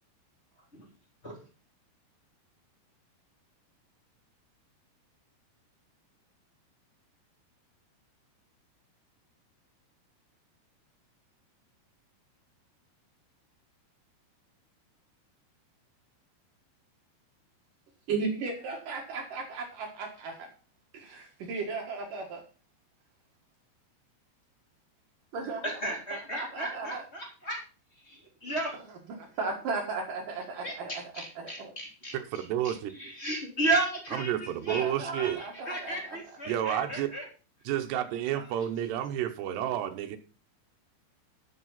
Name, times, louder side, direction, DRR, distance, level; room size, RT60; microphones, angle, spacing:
voice 1, 18.1-20.5 20.9-22.4 25.3-25.8 26.3-27.0 29.1-31.7 34.7-36.2, right 4 dB, 55° right, 1 dB, 2.8 m, -36 dB
voice 2, 25.6-27.6 28.0-28.8 30.6-37.2, right 2 dB, 15° left, 0 dB, 3.1 m, -34 dB
voice 3, 32.1-32.9 34.1-35.4 36.5-37.1 37.7-40.2, right 11 dB, 75° right, 7 dB, 2.9 m, -30 dB
12.5 x 6.8 x 5.7 m, 0.35 s
omnidirectional pair, 5.3 m